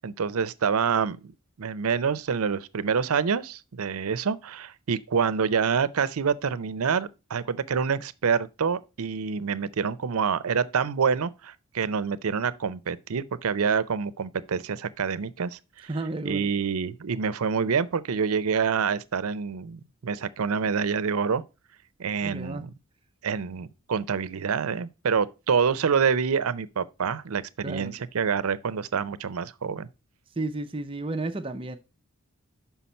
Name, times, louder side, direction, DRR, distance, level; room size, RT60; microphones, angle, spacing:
voice 1, 0.0-1.3 1.6-15.9 16.2-21.4 22.0-22.7 23.2-29.9, right 6 dB, 85° right, 0.5 m, -27 dB
voice 2, 15.9-16.5 22.2-22.7 27.6-27.9 30.4-31.8, right 2 dB, 25° right, 0.5 m, -32 dB
5.8 x 5.7 x 4.1 m
head